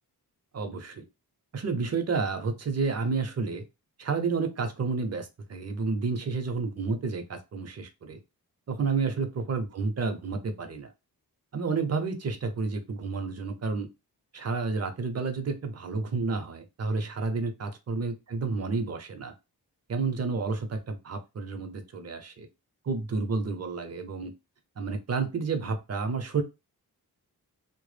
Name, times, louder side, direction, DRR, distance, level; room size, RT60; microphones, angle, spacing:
voice 1, 0.5-1.0 1.5-3.6 4.0-8.2 8.7-10.9 11.5-13.9 14.3-19.3 19.9-22.5 22.9-24.3 24.8-26.4, right 4 dB, 45° right, 7 dB, 0.5 m, -30 dB
2.1 x 2.0 x 3.2 m, 0.25 s
wide cardioid pair, 110°, 37 cm